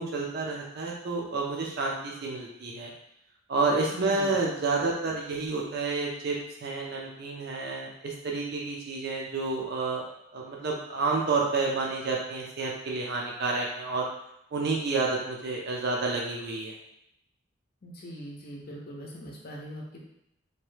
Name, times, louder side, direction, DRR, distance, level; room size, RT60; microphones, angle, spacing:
voice 1, 0.0-2.9 3.5-10.0 10.3-14.1 14.5-16.7, right 3 dB, 55° right, -2 dB, 0.5 m, -30 dB
voice 2, 3.9-4.4 17.8-20.0, equal, 50° left, -1 dB, 0.6 m, -41 dB
2.8 x 2.2 x 3.2 m, 0.80 s
head